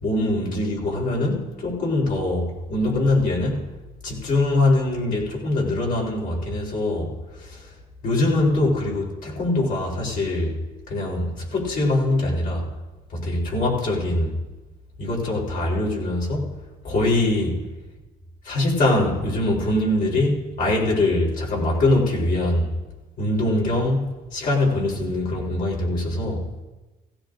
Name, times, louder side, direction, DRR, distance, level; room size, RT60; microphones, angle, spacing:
voice 1, 0.0-3.7 4.0-7.6 8.0-10.5 10.9-12.7 13.1-14.3 15.0-16.6 16.8-17.6 18.4-22.7 23.2-26.4, left 2 dB, 55° left, -3 dB, 3.9 m, -23 dB
16.5 x 16.5 x 2.6 m, 1.2 s
cardioid pair, 110°, 17 cm